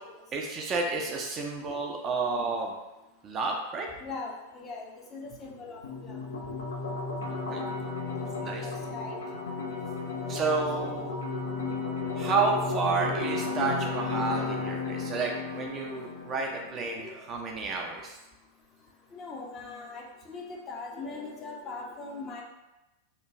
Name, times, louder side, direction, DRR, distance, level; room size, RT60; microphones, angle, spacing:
voice 1, 0.3-2.7 3.2-3.9 7.2-7.6 8.1-8.7 10.3-11.1 12.2-18.2, right 4 dB, 30° right, 1 dB, 0.4 m, -31 dB
voice 2, 4.0-4.9 5.1-6.2 8.6-9.2 9.8-10.3 10.8-10.9 17.0-17.2 19.1-22.4, left 3 dB, 25° left, -1 dB, 0.6 m, -41 dB
sound 1, 5.8-16.8, left 3 dB, 65° left, 0.5 m, -33 dB
3.0 x 2.2 x 3.5 m, 0.99 s
figure-of-eight pair, 90°, 0 cm